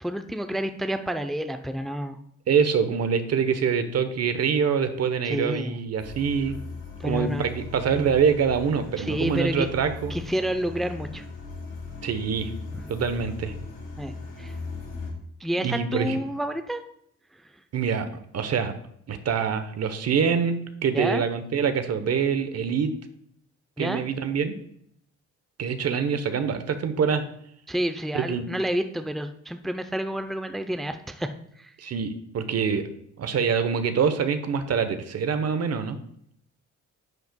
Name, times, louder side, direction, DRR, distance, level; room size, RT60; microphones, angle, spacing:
voice 1, 0.0-2.2 5.2-5.7 7.0-7.5 9.0-9.7 10.1-11.3 12.8-12.9 14.0-14.1 14.4-14.5 15.4-16.8 20.9-21.2 23.8-24.0 27.7-31.3 31.6-31.7, equal, ahead, 8 dB, 0.6 m, -29 dB
voice 2, 2.5-6.6 7.0-10.2 12.0-12.5 12.9-13.5 15.6-16.2 17.7-18.1 18.3-18.7 19.1-22.9 23.8-24.5 25.6-27.2 28.1-28.5 31.8-32.9 33.2-36.0, right 6 dB, 55° right, 9 dB, 1.0 m, -25 dB
sound 1, 6.0-15.1, left 3 dB, 90° left, 3.0 m, -38 dB
11.0 x 7.8 x 2.3 m, 0.70 s
cardioid pair, 90°, 30 cm